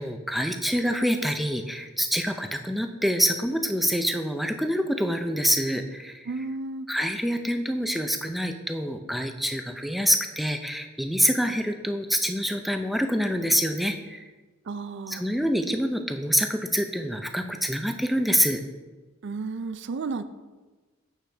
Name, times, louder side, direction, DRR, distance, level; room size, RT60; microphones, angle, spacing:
voice 1, 0.0-6.3 6.9-14.2 15.1-18.6, equal, ahead, 6 dB, 0.4 m, -26 dB
voice 2, 6.3-6.9 14.7-15.2 19.2-20.2, right 4 dB, 55° right, 12 dB, 0.4 m, -32 dB
8.2 x 6.5 x 3.4 m, 1.3 s
head